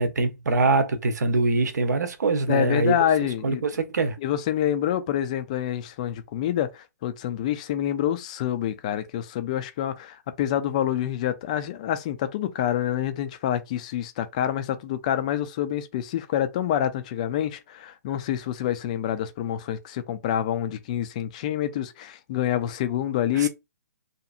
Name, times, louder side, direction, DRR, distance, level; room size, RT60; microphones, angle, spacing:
voice 1, 0.0-3.0 3.4-4.2 23.3-23.5, right 3 dB, 70° right, 0.7 m, -23 dB
voice 2, 2.5-3.6 4.2-23.5, left 11 dB, 25° left, 0.3 m, -27 dB
2.7 x 2.5 x 2.4 m
hypercardioid pair, 160°, 10 cm